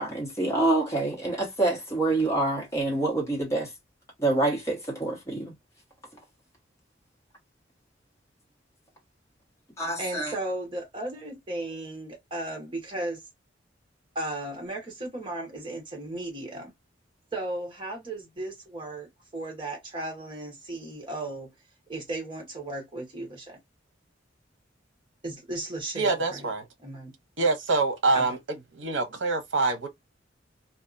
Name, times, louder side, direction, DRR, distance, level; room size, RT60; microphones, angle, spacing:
voice 1, 0.0-3.7 4.2-5.5 9.8-10.3, right 2 dB, 15° left, 1.2 m, -26 dB
voice 2, 10.0-13.2 14.1-16.7 17.3-21.5 21.9-23.6 25.2-26.5 26.8-27.1 28.1-28.3, right 2 dB, 25° right, 1.1 m, -35 dB
voice 3, 25.9-26.7 27.4-28.4 28.7-29.9, right 3 dB, 75° right, 0.7 m, -25 dB
2.7 x 2.4 x 2.4 m
head